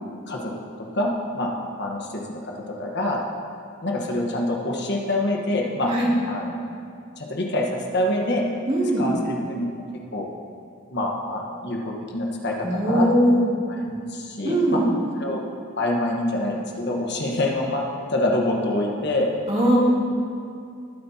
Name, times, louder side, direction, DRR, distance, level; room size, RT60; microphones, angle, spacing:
voice 1, 1.8-2.5 2.8-3.2 3.8-5.9 6.3-6.6 7.2-8.4 9.0-9.6 10.1-10.3 10.9-13.1 13.8-14.8 15.2-15.4 15.8-17.8 18.1-19.3, left 1 dB, 55° left, 0 dB, 1.3 m, -26 dB
voice 2, 8.7-9.1 12.6-13.4 14.4-14.9 19.5-19.8, right 1 dB, 30° right, -6 dB, 2.8 m, -20 dB
19.5 x 9.4 x 2.9 m, 2.5 s
head